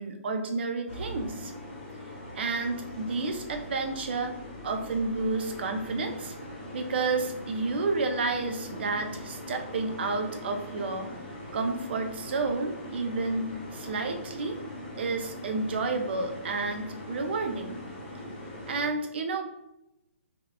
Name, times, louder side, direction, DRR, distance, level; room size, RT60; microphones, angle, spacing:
voice 1, 0.0-1.5 2.3-4.3 4.6-6.3 6.7-11.1 11.5-14.6 15.0-17.8 18.7-19.4, right 3 dB, 50° right, 5 dB, 0.4 m, -30 dB
sound 1, 0.9-18.9, left 1 dB, 25° left, 1.1 m, -41 dB
3.5 x 2.3 x 2.3 m, 0.88 s
hypercardioid pair, 165°, 8 cm